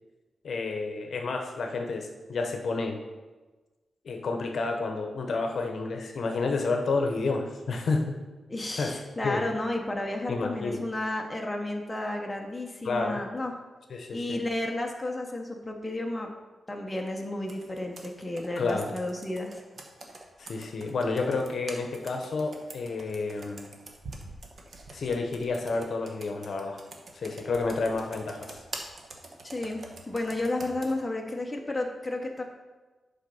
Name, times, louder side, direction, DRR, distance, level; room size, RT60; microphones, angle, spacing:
voice 1, 0.4-3.0 4.0-8.2 8.8-9.0 9.2-9.4 10.3-10.8 12.8-13.2 13.9-14.4 18.6-18.9 20.4-23.7 24.9-26.8 27.1-28.6, left 3 dB, 55° left, 4 dB, 0.8 m, -30 dB
voice 2, 8.5-13.5 14.1-16.3 16.7-19.6 29.4-32.4, left 2 dB, 10° left, 1 dB, 0.7 m, -32 dB
Computer keyboard, 17.5-31.0, right 2 dB, 45° right, 0.9 m, -46 dB
8.0 x 4.1 x 5.5 m, 1.2 s
wide cardioid pair, 165°, 0 cm